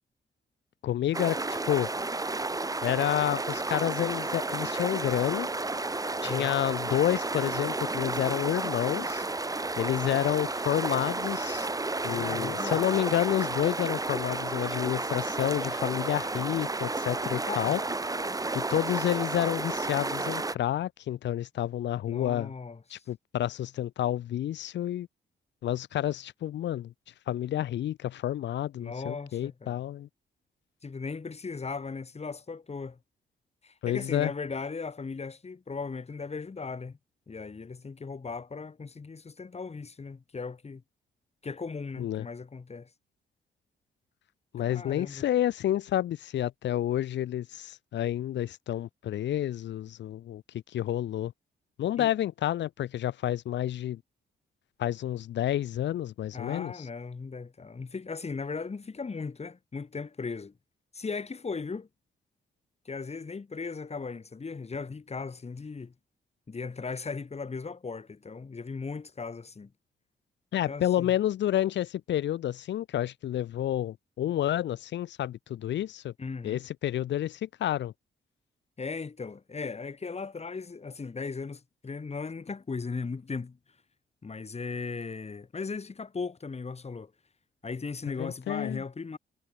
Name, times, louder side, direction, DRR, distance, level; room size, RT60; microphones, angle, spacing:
voice 1, 0.8-1.9 2.8-5.5 6.2-9.2 9.8-11.7 12.0-17.8 18.5-22.5 22.9-25.1 25.6-26.9 27.3-30.1 33.8-34.3 42.0-42.3 44.5-50.4 50.7-51.3 51.8-54.0 54.8-56.7 70.5-76.1 76.4-77.9 88.2-88.8, left 12 dB, 90° left, 4.3 m, -29 dB
sound 1, 1.1-20.5, right 2 dB, 20° right, 1.6 m, -32 dB
voice 2, 6.2-6.5 12.1-12.8 17.5-17.8 22.1-23.0 28.8-29.8 30.8-33.0 33.6-37.0 37.3-40.8 41.4-42.9 44.6-45.2 52.0-52.1 56.3-60.5 60.9-61.9 62.9-65.9 66.5-69.7 70.7-71.1 76.2-76.6 78.8-83.6 84.2-87.1 87.6-89.2, left 4 dB, 35° left, 3.8 m, -37 dB
cardioid pair, 75°, 18 cm